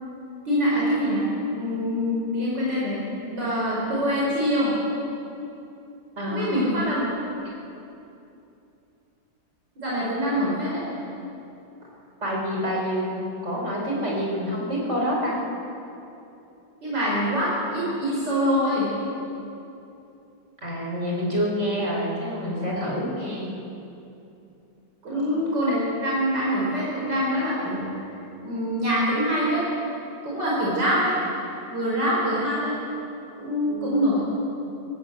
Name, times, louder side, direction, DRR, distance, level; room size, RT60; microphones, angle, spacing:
voice 1, 0.5-1.2 1.5-3.0 3.3-4.7 6.3-7.1 9.8-10.8 16.8-18.9 25.0-27.9 28.4-29.6 30.2-31.2 31.7-32.7 33.4-34.2, equal, 65° right, -7 dB, 5.5 m, -24 dB
voice 2, 6.2-6.6 12.2-15.4 20.6-23.5 25.1-25.2 33.7-34.1, equal, 35° right, -3 dB, 5.1 m, -27 dB
20.0 x 17.0 x 8.0 m, 2.8 s
omnidirectional pair, 2.0 m